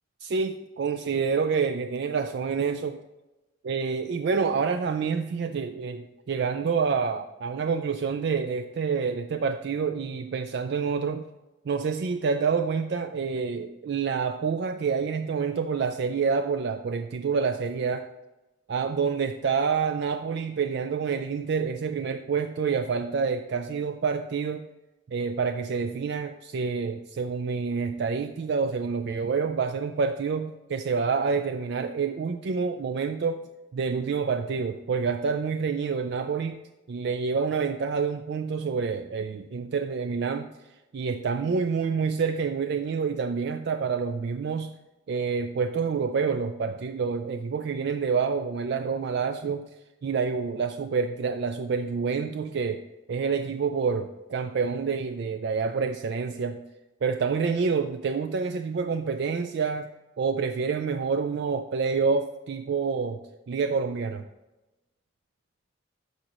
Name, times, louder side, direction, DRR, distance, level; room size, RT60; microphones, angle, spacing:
voice 1, 0.2-3.0 3.6-11.3 11.7-18.1 18.7-24.6 25.1-33.4 33.7-36.6 36.9-40.5 40.9-44.7 45.1-49.7 50.0-52.8 53.1-56.6 57.0-59.9 60.2-63.2 63.5-64.2, right 5 dB, 55° right, 8 dB, 0.3 m, -27 dB
12.5 x 5.1 x 3.0 m, 1.0 s
head